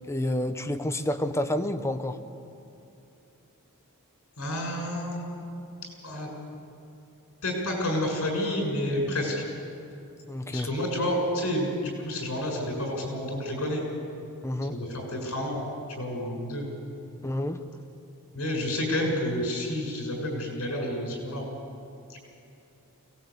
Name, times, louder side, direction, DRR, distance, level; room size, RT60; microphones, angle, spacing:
voice 1, 0.1-2.2 10.3-10.7 14.4-14.8 17.2-17.6, left 1 dB, 10° left, 8 dB, 0.9 m, -29 dB
voice 2, 4.4-5.4 6.0-6.3 7.4-9.4 10.5-13.8 14.7-15.6 16.0-16.6 18.3-21.4, left 1 dB, 70° left, 1 dB, 6.7 m, -29 dB
22.5 x 19.0 x 8.5 m, 2.7 s
head